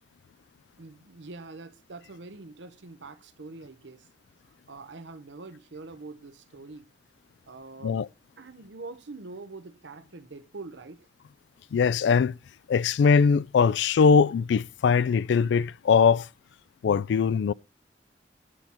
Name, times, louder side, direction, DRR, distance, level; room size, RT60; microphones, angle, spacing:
voice 1, 0.8-4.1 4.7-6.9 7.5-8.0 8.4-11.1, right 3 dB, 85° right, 0.8 m, -44 dB
voice 2, 11.7-12.4 12.7-16.3 16.8-17.5, left 6 dB, 75° left, 0.3 m, -21 dB
10.0 x 4.5 x 5.4 m
head